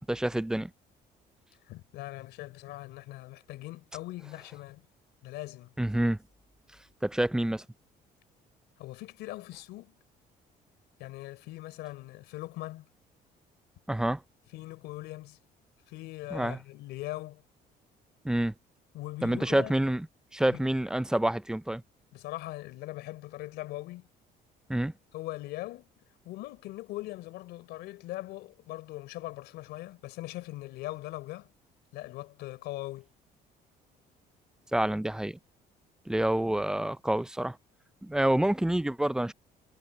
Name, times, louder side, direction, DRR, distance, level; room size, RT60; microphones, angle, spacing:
voice 1, 0.1-0.7 5.8-6.2 7.0-7.6 13.9-14.2 16.3-16.6 18.2-18.5 19.2-20.1 20.3-21.8 24.7-24.9 34.7-35.4 36.1-37.6 38.0-39.3, right 1 dB, 5° right, 0.4 m, -27 dB
voice 2, 1.7-4.8 5.2-5.7 8.8-9.9 11.0-12.9 14.5-15.4 15.9-17.4 18.9-19.7 20.5-20.6 22.1-24.1 25.1-25.9 26.2-31.5 31.9-33.1, left 17 dB, 85° left, 4.0 m, -41 dB
cardioid pair, 110°, 17 cm